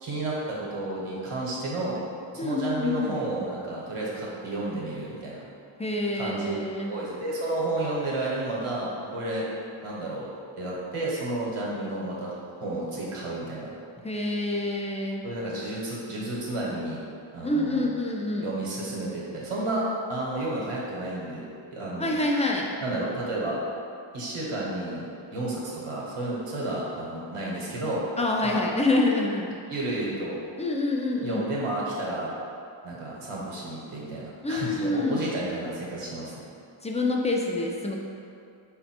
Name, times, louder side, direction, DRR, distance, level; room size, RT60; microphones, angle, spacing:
voice 1, 0.0-2.0 2.3-5.4 6.1-9.5 9.8-10.3 10.6-13.7 15.2-17.0 17.3-17.9 18.4-21.4 21.7-22.1 22.8-23.6 24.1-28.0 28.4-28.6 29.7-30.4 31.2-32.3 32.8-36.5, right 2 dB, 80° right, -5 dB, 1.0 m, -31 dB
voice 2, 2.4-3.3 5.8-6.9 14.0-15.2 17.4-18.5 22.0-22.7 28.2-29.5 30.6-31.4 34.4-35.3 36.8-38.0, left 2 dB, 15° left, -1 dB, 0.3 m, -27 dB
3.9 x 2.2 x 4.2 m, 2.5 s
cardioid pair, 65°, 50 cm